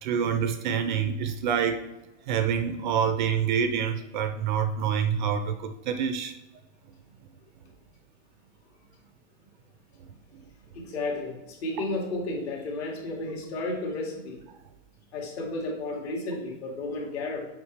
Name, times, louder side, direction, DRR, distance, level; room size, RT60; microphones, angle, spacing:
voice 1, 0.0-1.8 2.3-6.3, right 7 dB, 40° right, 8 dB, 0.4 m, -27 dB
voice 2, 10.7-14.4 15.1-17.5, left 2 dB, 60° left, -1 dB, 2.1 m, -32 dB
7.1 x 5.0 x 3.2 m, 1.0 s
supercardioid pair, 160°, 37 cm